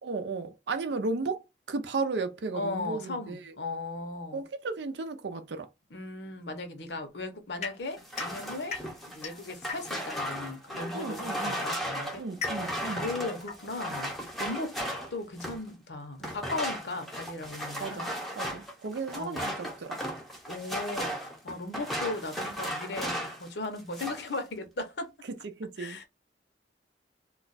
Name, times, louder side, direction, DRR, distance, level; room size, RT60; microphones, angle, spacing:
voice 1, 0.0-3.4 4.3-5.7 10.9-11.7 12.1-13.1 17.8-20.0 25.6-26.0, right 3 dB, 80° right, 0.5 m, -34 dB
voice 2, 2.5-4.4 5.9-8.8 9.1-12.2 13.0-14.1 14.4-14.8 15.1-18.1 19.1-19.5 20.5-25.1 25.8-26.1, left 2 dB, 80° left, 0.8 m, -37 dB
sound 1, 7.6-10.2 11.2-14.6, left 5 dB, 40° left, 0.6 m, -41 dB
sound 2, 8.0-15.7 16.2-23.5 23.8-24.3, equal, ahead, 0.6 m, -36 dB
2.4 x 2.2 x 3.9 m
head